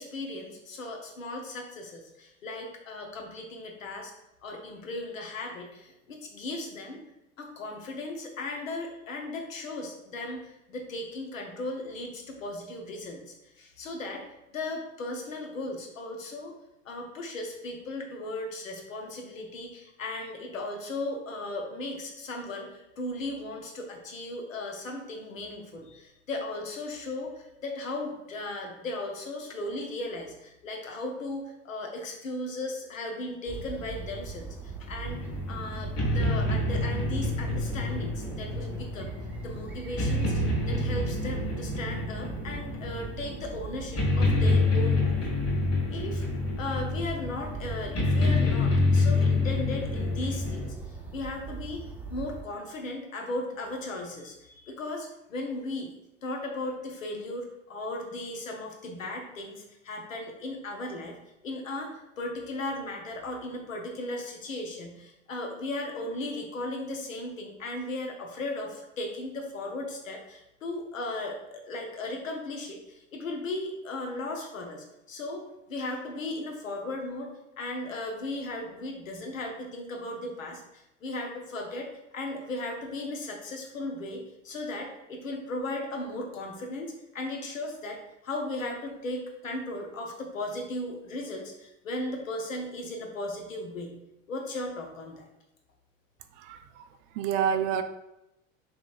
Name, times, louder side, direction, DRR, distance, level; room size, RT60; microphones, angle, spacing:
voice 1, 0.0-4.1 4.4-7.0 7.4-14.2 14.5-16.6 16.8-35.2 35.5-39.1 39.4-45.2 45.9-46.3 46.6-55.9 56.2-61.2 61.4-94.0 94.3-95.3, left 2 dB, 85° left, 2 dB, 0.8 m, -36 dB
sound 1, 33.5-52.4, right 5 dB, 5° right, 0.7 m, -40 dB
sound 2, 35.0-50.6, left 2 dB, 35° left, 1.4 m, -27 dB
voice 2, 96.3-97.8, right 8 dB, 50° right, 8 dB, 0.4 m, -29 dB
5.0 x 3.0 x 2.3 m, 0.88 s
figure-of-eight pair, 75°, 39 cm